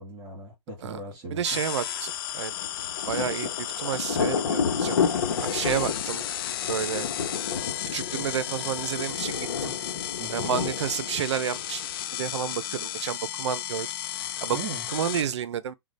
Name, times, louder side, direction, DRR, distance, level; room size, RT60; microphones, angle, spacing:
voice 1, 0.0-1.6 10.2-10.6 14.5-14.8, right 3 dB, 30° right, 1.8 m, -38 dB
voice 2, 1.3-2.5 3.1-5.0 5.4-6.3 6.7-7.1 7.9-9.7 10.3-11.8 12.1-13.9 14.4-14.6 14.9-15.7, right 8 dB, 70° right, 0.6 m, -30 dB
sound 1, 1.4-15.2, left 12 dB, 50° left, 0.4 m, -34 dB
Thunder, 2.5-12.0, left 6 dB, 75° left, 0.9 m, -31 dB
3.1 x 2.3 x 4.0 m
hypercardioid pair, 135°, 15 cm